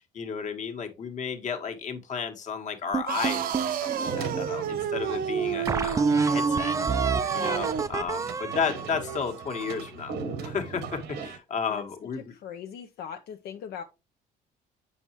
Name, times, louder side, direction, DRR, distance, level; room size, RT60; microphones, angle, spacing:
voice 1, 0.1-6.8 7.3-10.1 10.4-12.3, left 6 dB, 45° left, 1.5 m, -33 dB
sound 1, 2.9-4.5 5.0-5.1 5.7-9.9, right 4 dB, 20° right, 0.4 m, -28 dB
sound 2, 3.1-8.0, right 9 dB, 60° right, 0.7 m, -30 dB
sound 3, 4.0-11.4, right 5 dB, 80° right, 1.2 m, -39 dB
voice 2, 12.3-13.8, left 8 dB, 70° left, 0.7 m, -39 dB
7.7 x 5.6 x 3.0 m
cardioid pair, 110°, 17 cm